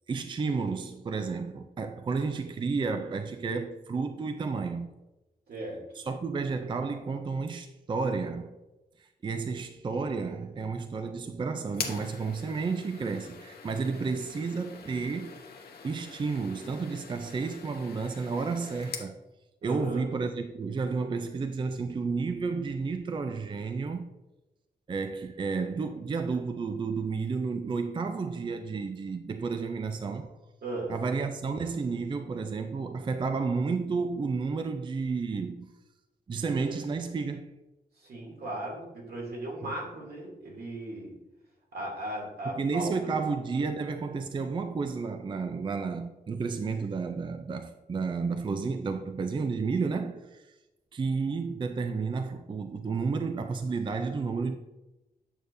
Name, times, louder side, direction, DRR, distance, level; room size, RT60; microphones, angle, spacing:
voice 1, 0.1-4.9 6.0-8.6 9.0-15.4 15.8-19.2 19.6-24.1 24.9-30.4 30.9-35.7 36.3-37.5 39.6-39.7 42.4-50.5 50.9-54.6, right 4 dB, 30° right, 0.4 m, -31 dB
voice 2, 5.5-5.8 19.6-20.1 30.6-30.9 38.0-41.1 41.7-42.9, right 1 dB, 80° right, 2.6 m, -37 dB
sound 1, 11.7-19.1, left 5 dB, 75° left, 0.9 m, -43 dB
8.8 x 6.5 x 2.6 m
wide cardioid pair, 135°, 16 cm